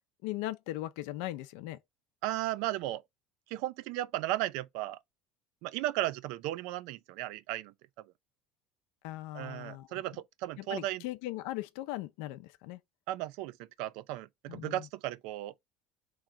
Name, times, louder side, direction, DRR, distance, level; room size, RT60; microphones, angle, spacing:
voice 1, 0.2-1.8 9.0-10.0 10.6-12.8 14.5-14.9, left 15 dB, 80° left, 0.5 m, -39 dB
voice 2, 2.2-3.0 3.5-5.0 5.6-8.1 9.3-11.0 13.1-15.5, right 15 dB, 75° right, 0.4 m, -35 dB
3.7 x 3.1 x 4.5 m
cardioid pair, 135°, 0 cm